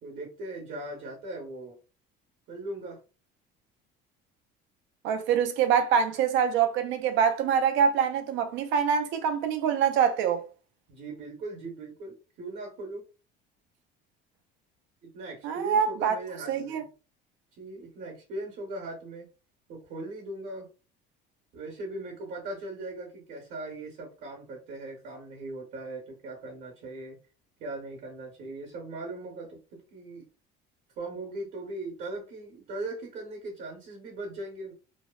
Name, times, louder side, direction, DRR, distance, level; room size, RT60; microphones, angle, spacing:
voice 1, 0.0-1.8 2.5-3.0 10.9-13.0 15.0-16.8 17.5-19.3 19.7-20.7 21.5-27.2 27.6-30.3 31.0-34.7, right 2 dB, 55° right, 0.9 m, -39 dB
voice 2, 5.0-10.4 15.4-16.2 16.5-16.8, right 7 dB, 70° right, 0.5 m, -25 dB
2.7 x 2.1 x 2.2 m
cardioid pair, 145°, 20 cm